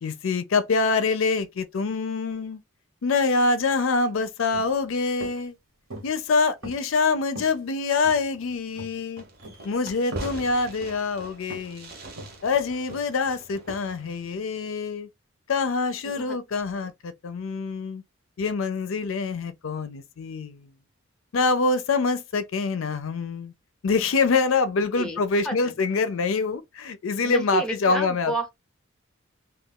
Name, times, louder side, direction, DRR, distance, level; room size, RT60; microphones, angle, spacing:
voice 1, 0.0-2.6 3.0-5.5 6.0-9.2 9.6-11.9 12.4-15.1 15.5-18.0 18.4-20.7 21.3-23.5 23.8-28.3, left 4 dB, 70° left, 0.4 m, -25 dB
sound 1, 4.5-4.8 5.2-5.4 5.9-6.2 6.6-7.1 7.4-7.6 8.0-8.5 8.8-9.0 9.4-9.7 10.1-10.4 10.8-11.0 11.5-11.7 12.2-12.4 12.9-13.2 13.7-13.8, right 1 dB, 80° right, 1.2 m, -40 dB
Fireworks, 9.2-14.4, right 1 dB, 45° right, 0.7 m, -41 dB
voice 2, 16.0-16.4 16.8-16.9 24.9-25.7 27.2-28.5, right 2 dB, 5° left, 0.6 m, -31 dB
2.3 x 2.3 x 3.6 m
head